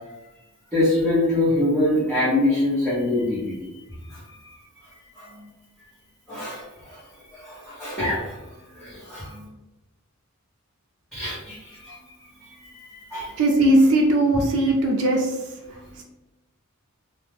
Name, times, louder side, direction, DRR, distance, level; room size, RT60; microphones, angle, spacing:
voice 1, 0.7-3.8 4.1-4.6 5.1-5.5 6.3-7.0 7.3-9.5 11.1-12.0 12.3-13.3 14.6-14.7 15.7-16.0, left 1 dB, 5° left, -12 dB, 0.7 m, -25 dB
voice 2, 13.4-15.4, right 1 dB, 75° right, 1 dB, 0.4 m, -18 dB
2.3 x 2.0 x 3.0 m, 1.0 s
head